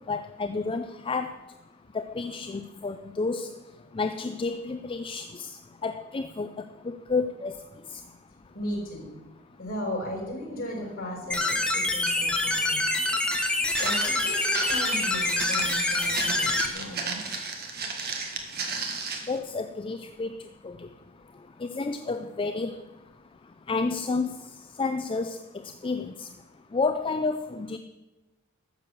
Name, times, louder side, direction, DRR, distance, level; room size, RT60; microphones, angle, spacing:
voice 1, 0.1-1.4 1.9-3.5 3.9-5.5 5.8-7.5 19.3-20.3 20.6-20.9 21.6-22.7 23.7-24.4 24.8-25.4 25.8-26.3 26.7-27.8, left 4 dB, 25° left, 8 dB, 0.4 m, -30 dB
voice 2, 8.5-9.1 9.6-13.0 13.8-17.4, equal, 45° left, -3 dB, 5.2 m, -36 dB
sound 1, 11.3-16.7, left 2 dB, 5° left, 1.1 m, -26 dB
Walk footsteps, 13.7-19.4, right 4 dB, 50° right, 1.7 m, -34 dB
13.0 x 7.6 x 6.8 m, 1.1 s
head